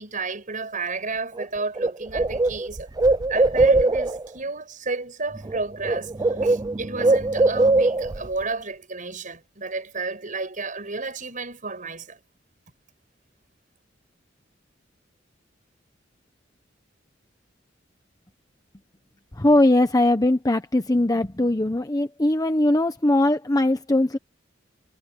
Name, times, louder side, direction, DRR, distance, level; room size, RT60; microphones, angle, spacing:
voice 1, 0.0-2.9 3.3-12.2, right 3 dB, 45° right, 6.8 m, -31 dB
Bird, 1.4-1.5 1.8-4.3 5.3-5.6 5.8-8.3, right 2 dB, 20° right, 0.5 m, -21 dB
voice 2, 19.4-24.2, left 1 dB, 20° left, 0.9 m, -20 dB
head